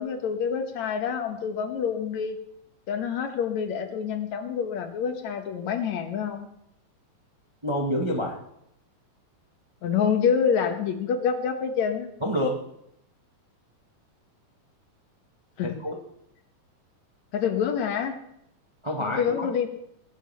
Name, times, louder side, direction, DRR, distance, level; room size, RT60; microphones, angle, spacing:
voice 1, 0.0-2.4 2.9-6.5 9.8-12.1 15.6-15.7 17.3-18.2 19.0-19.7, left 7 dB, 65° left, 6 dB, 2.4 m, -27 dB
voice 2, 7.6-8.4 12.2-12.6 15.6-16.0 18.8-19.5, equal, 30° right, 0 dB, 0.5 m, -28 dB
21.0 x 7.7 x 5.6 m, 0.76 s
omnidirectional pair, 3.7 m